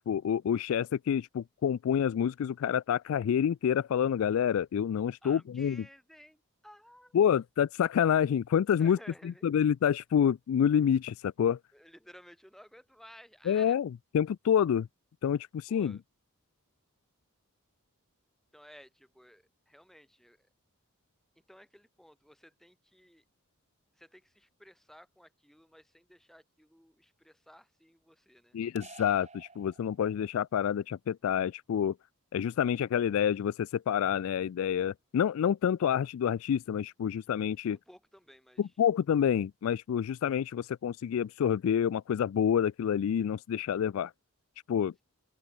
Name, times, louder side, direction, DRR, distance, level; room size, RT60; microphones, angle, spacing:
voice 1, 0.1-5.8 7.1-9.0 9.2-11.6 13.5-14.9 15.2-16.0 28.5-32.0 32.3-37.8 38.6-44.1 44.7-45.0, left 8 dB, 65° left, 0.3 m, -28 dB
voice 2, 5.2-7.2 8.8-9.5 11.7-13.8 15.7-16.0 18.5-20.5 21.5-23.2 23.9-28.6 37.7-38.6, equal, ahead, 3.9 m, -56 dB
sound 1, 28.8-30.4, right 4 dB, 30° right, 6.5 m, -51 dB
open air
head